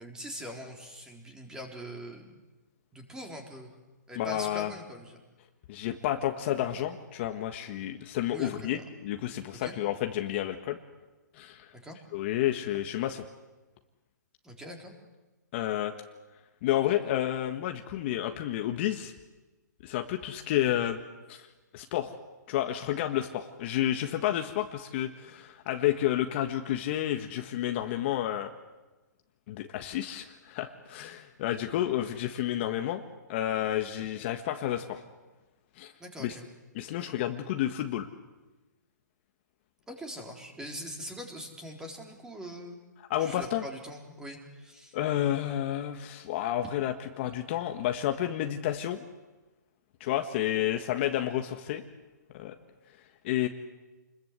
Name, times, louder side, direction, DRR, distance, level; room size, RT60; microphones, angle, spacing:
voice 1, 0.0-2.4 2.9-3.7 4.1-5.2 8.3-8.9 9.6-9.7 11.8-12.0 14.4-14.9 36.0-36.5 39.9-42.8 43.2-45.0, equal, 5° right, 2 dB, 3.9 m, -42 dB
voice 2, 4.2-4.7 5.7-10.8 11.3-11.7 12.1-13.2 15.5-15.9 16.6-19.1 19.8-21.0 21.3-21.5 21.7-22.1 22.5-28.5 29.5-33.0 33.3-35.0 35.8-35.9 36.2-36.3 36.7-38.1 43.1-43.6 44.9-49.0 50.0-51.8 52.3-52.5 53.2-53.5, left 12 dB, 35° left, 6 dB, 1.6 m, -30 dB
28.5 x 21.5 x 8.2 m, 1.2 s
hypercardioid pair, 145°, 10 cm